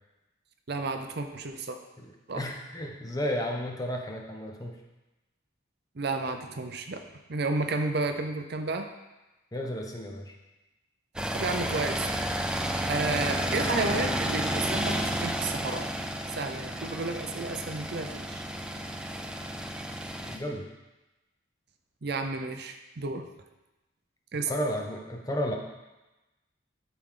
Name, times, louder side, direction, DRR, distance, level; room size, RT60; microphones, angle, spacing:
voice 1, 0.7-1.8 2.3-2.4 6.0-8.9 11.3-12.1 12.9-15.9 16.4-18.4 22.0-23.3 24.3-24.5, right 3 dB, 55° right, 6 dB, 0.6 m, -32 dB
voice 2, 2.0-4.8 9.5-10.3 13.0-13.5 13.9-14.1 20.3-20.7 24.5-25.5, equal, 20° left, 1 dB, 0.8 m, -33 dB
sound 1, 11.2-20.4, equal, 5° right, 0.4 m, -31 dB
12.0 x 4.7 x 3.8 m, 1.1 s
head